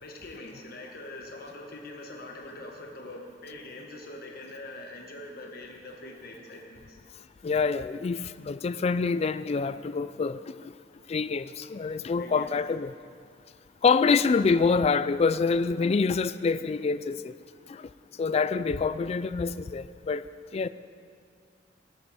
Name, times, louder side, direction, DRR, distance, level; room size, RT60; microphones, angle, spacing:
voice 1, 0.0-7.0 12.2-12.5, left 2 dB, 55° left, 1 dB, 1.2 m, -43 dB
voice 2, 7.4-10.7 11.1-12.9 13.8-17.4 17.7-17.9 18.2-20.2 20.5-20.7, left 4 dB, 35° left, 14 dB, 0.3 m, -26 dB
14.5 x 11.5 x 4.2 m, 2.2 s
head